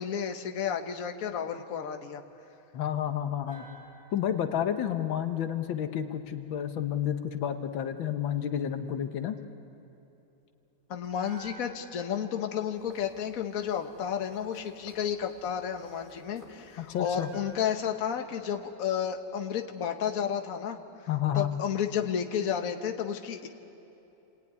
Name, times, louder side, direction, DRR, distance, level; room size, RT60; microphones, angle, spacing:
voice 1, 0.0-2.2 10.9-20.8 21.3-23.5, left 8 dB, 50° left, 4 dB, 1.5 m, -32 dB
voice 2, 2.7-3.7 4.1-9.4 16.8-17.3 21.1-21.5, left 10 dB, 85° left, 7 dB, 1.8 m, -30 dB
sound 1, 3.5-6.6 11.0-14.3 16.9-20.1 20.4-20.5, right 1 dB, 55° right, 3.9 m, -54 dB
sound 2, 12.7-17.7, left 1 dB, 25° left, 4.9 m, -56 dB
29.0 x 19.0 x 9.6 m, 2.9 s
omnidirectional pair, 2.1 m